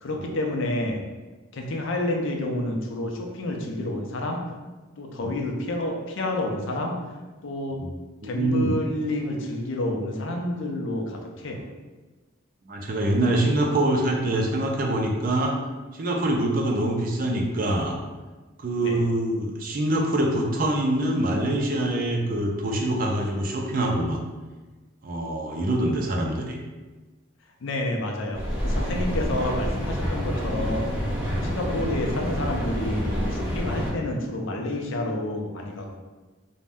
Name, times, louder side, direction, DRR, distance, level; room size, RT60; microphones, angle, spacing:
voice 1, 0.0-1.0 1.5-4.4 5.0-7.0 7.4-7.8 8.2-11.6 18.8-19.0 27.6-30.9 31.4-35.8, left 1 dB, 65° left, 1 dB, 0.4 m, -29 dB
voice 2, 8.2-8.7 12.7-15.6 15.9-18.0 18.6-24.2 25.0-26.6 28.9-29.1 31.3-31.5, right 1 dB, 40° right, 0 dB, 0.4 m, -25 dB
Mechanical fan, 28.3-33.9, equal, 10° right, 1.2 m, -28 dB
2.5 x 2.1 x 3.4 m, 1.3 s
head